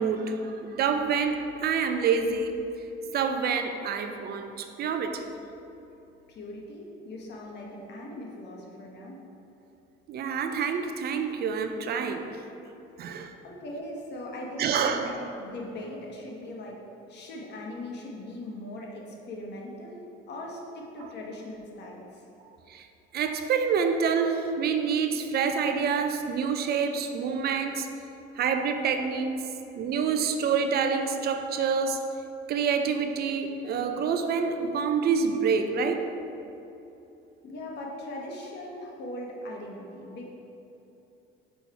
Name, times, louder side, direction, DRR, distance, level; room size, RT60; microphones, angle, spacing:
voice 1, 0.0-2.7 3.1-5.3 10.1-12.4 13.0-13.3 14.6-15.1 21.0-21.1 22.7-22.9 23.1-27.9 28.4-32.2 32.5-36.1, right 6 dB, 50° right, 0.5 m, -27 dB
voice 2, 6.3-9.2 13.0-16.8 17.1-22.2 37.4-40.3, left 1 dB, 55° left, 1.2 m, -40 dB
5.6 x 4.4 x 4.6 m
cardioid pair, 120°, 21 cm